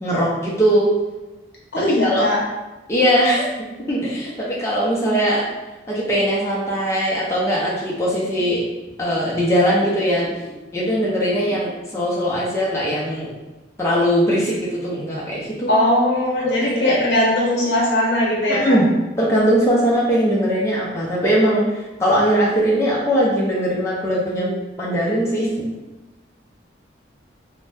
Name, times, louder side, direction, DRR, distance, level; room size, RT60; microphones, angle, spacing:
voice 1, 0.0-0.9 1.8-2.3 2.9-3.5 3.9-5.5 5.9-8.6 9.0-10.4 10.7-13.3 13.8-15.8 16.4-17.0 18.5-18.9 19.2-21.6 22.0-25.5, equal, 15° left, -6 dB, 0.4 m, -20 dB
voice 2, 1.7-2.4 15.7-18.7, left 1 dB, 60° left, -4 dB, 0.8 m, -19 dB
2.6 x 2.0 x 3.2 m, 1.1 s
head